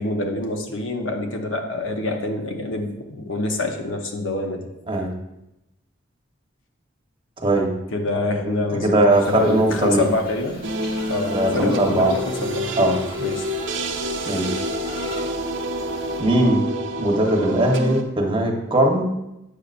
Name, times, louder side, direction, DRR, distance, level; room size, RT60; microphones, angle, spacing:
voice 1, 0.0-4.7 7.9-10.6 11.1-12.7 13.2-13.5, left 2 dB, 80° left, 3 dB, 0.9 m, -26 dB
voice 2, 7.4-7.7 8.3-10.0 11.3-12.2 12.8-13.0 14.3-14.6 16.2-16.7 17.0-19.0, right 1 dB, 25° right, 0 dB, 1.0 m, -20 dB
sound 1, 9.1-16.2, equal, 55° left, 1.6 m, -41 dB
sound 2, 10.6-18.0, equal, 70° right, 0.7 m, -28 dB
8.3 x 6.5 x 2.5 m, 0.89 s
head